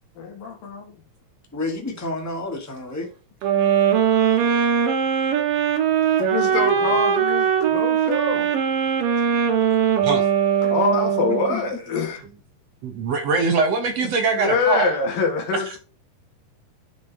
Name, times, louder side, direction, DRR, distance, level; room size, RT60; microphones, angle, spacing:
voice 1, 0.2-1.0 6.2-8.6 9.3-9.4 10.6-12.2 14.4-15.8, left 4 dB, 90° left, 3.7 m, -25 dB
voice 2, 1.5-3.1 6.4-7.0 11.3-11.8 14.0-14.1, left 2 dB, 5° left, 1.4 m, -31 dB
sound 1, 3.4-11.6, right 8 dB, 80° right, 3.0 m, -20 dB
voice 3, 12.8-14.9, right 4 dB, 65° right, 1.8 m, -22 dB
11.0 x 6.3 x 3.6 m
omnidirectional pair, 3.9 m